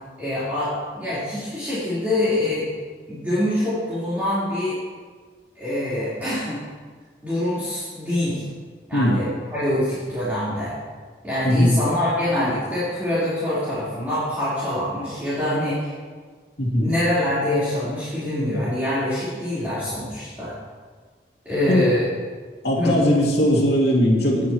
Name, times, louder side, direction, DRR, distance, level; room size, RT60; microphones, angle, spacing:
voice 1, 0.2-2.7 3.1-4.8 5.6-6.6 7.2-8.4 8.9-10.7 11.2-15.9 16.7-20.5 21.4-22.1 22.7-22.9, left 1 dB, 10° right, -15 dB, 4.0 m, -25 dB
voice 2, 11.4-11.8 16.6-16.9 21.7-21.8 22.6-24.5, equal, 70° left, -3 dB, 2.6 m, -19 dB
19.5 x 8.4 x 3.1 m, 1.5 s
head